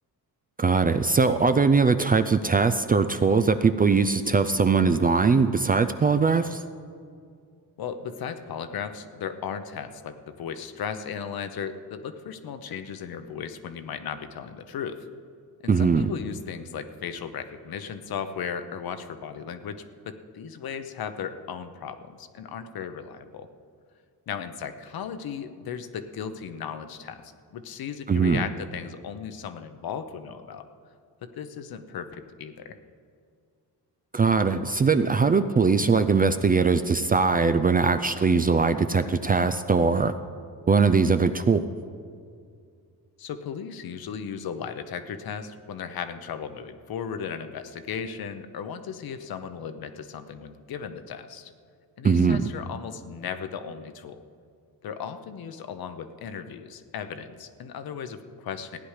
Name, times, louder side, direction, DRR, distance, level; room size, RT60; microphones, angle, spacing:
voice 1, 0.6-6.6 15.7-16.1 28.1-28.4 34.1-40.1 40.7-41.6 52.0-52.5, right 4 dB, 25° right, 9 dB, 0.4 m, -21 dB
voice 2, 7.8-15.0 15.6-23.5 24.3-27.2 27.5-30.7 31.2-32.8 43.2-51.5 52.0-54.2 54.8-58.8, left 7 dB, 65° left, 10 dB, 0.9 m, -36 dB
15.5 x 9.9 x 4.9 m, 2.2 s
cardioid pair, 115°, 39 cm